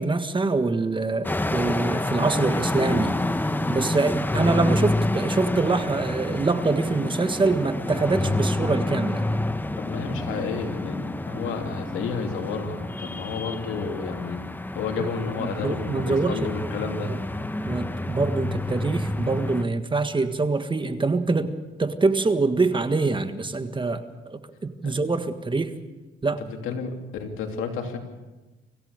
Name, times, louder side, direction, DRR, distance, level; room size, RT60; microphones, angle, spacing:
voice 1, 0.0-3.2 3.7-9.3 15.4-16.4 17.1-17.2 17.6-21.5 21.8-25.7 26.2-26.4, right 3 dB, 25° right, 9 dB, 1.6 m, -25 dB
sound 1, 1.2-19.6, left 1 dB, 10° left, 0.9 m, -28 dB
voice 2, 9.8-14.4 14.7-17.1 24.8-24.9 26.5-28.0, left 5 dB, 90° left, 3 dB, 3.0 m, -31 dB
25.5 x 16.0 x 6.7 m, 1.1 s
cardioid pair, 90°, 20 cm